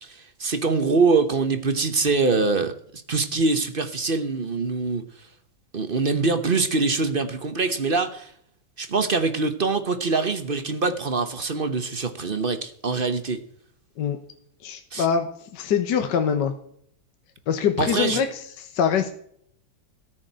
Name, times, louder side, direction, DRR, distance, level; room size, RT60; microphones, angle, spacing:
voice 1, 0.0-5.0 5.7-8.3 8.8-13.4 14.9-15.1 17.8-18.2, right 4 dB, 35° right, 9 dB, 0.9 m, -24 dB
voice 2, 14.6-16.5 17.5-18.3 18.6-19.1, left 7 dB, 65° left, 7 dB, 1.7 m, -24 dB
13.5 x 6.5 x 8.8 m, 0.65 s
omnidirectional pair, 2.1 m